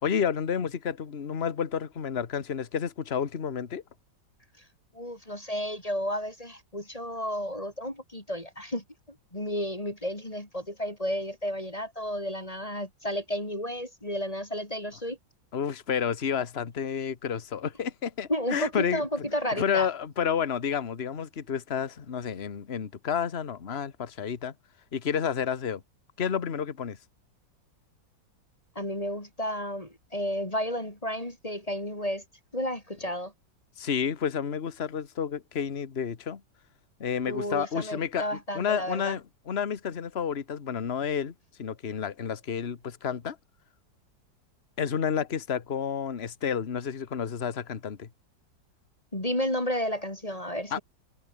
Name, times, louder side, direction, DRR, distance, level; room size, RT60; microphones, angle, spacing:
voice 1, 0.0-3.8 15.5-19.1 19.6-24.5 24.9-25.8 26.2-27.0 33.8-36.4 37.0-41.3 41.6-43.4 44.8-48.1 50.7-50.8, left 7 dB, 35° left, 1.5 m, -30 dB
voice 2, 4.9-8.8 9.3-15.2 18.3-19.9 28.8-32.2 32.5-33.3 37.3-39.2 49.1-50.8, equal, 20° left, 4.2 m, -32 dB
omnidirectional pair, 2.0 m